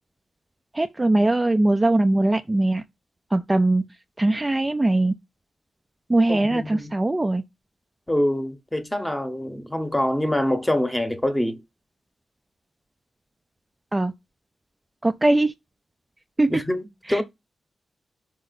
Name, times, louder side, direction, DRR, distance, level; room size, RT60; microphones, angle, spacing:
voice 1, 0.7-2.8 3.3-3.8 4.2-5.1 6.1-7.4 13.9-14.1 15.0-15.5 16.4-16.5 17.1-17.2, right 2 dB, 15° right, 0.5 m, -21 dB
voice 2, 6.3-7.0 8.1-11.6 16.5-17.2, left 1 dB, 10° left, 1.0 m, -25 dB
5.5 x 4.8 x 4.0 m
wide cardioid pair, 140°, 0 cm